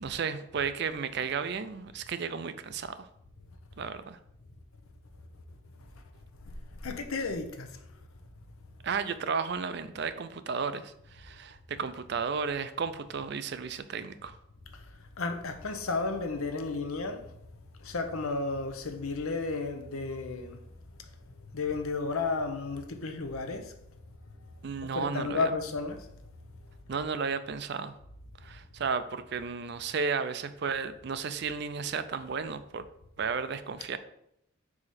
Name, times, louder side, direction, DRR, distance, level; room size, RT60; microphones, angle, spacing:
voice 1, 0.0-3.1 3.8-4.2 8.8-14.4 24.6-25.5 26.9-28.0 28.4-32.8 33.2-34.0, right 5 dB, 50° right, 0.4 m, -33 dB
voice 2, 6.8-7.8 15.2-17.2 17.8-20.6 21.5-23.7 24.9-26.1, left 3 dB, 85° left, 0.7 m, -32 dB
4.8 x 4.8 x 4.2 m
head